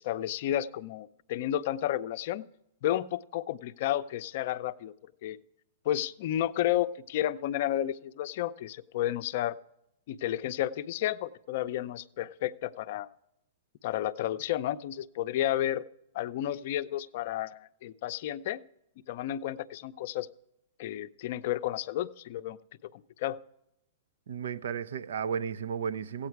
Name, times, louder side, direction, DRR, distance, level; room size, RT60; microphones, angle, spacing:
voice 1, 0.0-2.5 2.8-4.9 5.2-5.4 5.8-9.6 10.1-13.1 13.8-15.8 16.1-18.6 19.1-20.3 20.8-22.6 22.9-23.4, left 12 dB, 55° left, 0.5 m, -32 dB
voice 2, 24.3-26.3, right 7 dB, 75° right, 0.5 m, -33 dB
15.0 x 8.7 x 4.7 m
hypercardioid pair, 125°, 0 cm